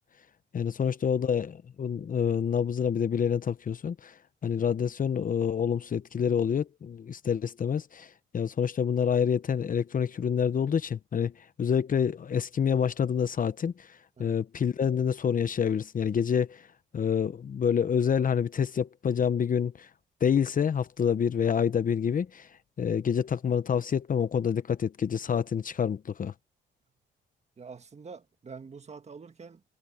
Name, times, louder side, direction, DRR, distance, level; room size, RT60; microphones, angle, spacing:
voice 1, 0.5-4.1 4.4-11.3 11.6-13.9 14.2-16.6 16.9-19.9 20.2-22.5 22.8-26.3, left 7 dB, 45° left, 0.9 m, -27 dB
voice 2, 27.6-29.6, right 5 dB, 35° right, 1.8 m, -46 dB
cardioid pair, 90°, 20 cm